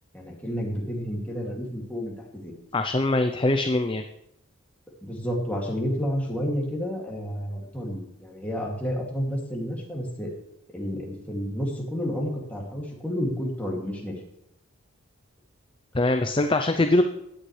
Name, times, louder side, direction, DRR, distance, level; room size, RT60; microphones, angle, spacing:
voice 1, 0.1-2.5 5.0-10.3 10.7-14.2, equal, 5° left, -3 dB, 2.4 m, -30 dB
voice 2, 2.7-4.0 15.9-17.1, left 2 dB, 20° left, 6 dB, 0.5 m, -22 dB
16.0 x 10.0 x 3.3 m, 0.85 s
head